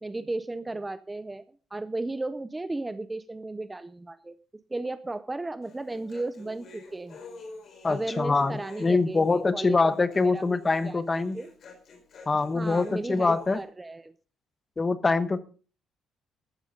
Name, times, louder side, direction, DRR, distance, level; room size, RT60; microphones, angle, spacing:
voice 1, 0.0-1.4 1.7-4.3 4.7-7.2 7.9-9.9 10.2-10.6 10.8-11.0 11.3-11.5 12.5-14.1, right 2 dB, 10° right, 13 dB, 0.5 m, -34 dB
Human voice, 5.6-13.6, left 3 dB, 40° left, 4.4 m, -48 dB
voice 2, 7.8-11.4 12.3-13.6 14.8-15.4, left 3 dB, 20° left, 13 dB, 1.1 m, -24 dB
14.5 x 12.5 x 3.8 m, 0.38 s
cardioid pair, 165°, 0 cm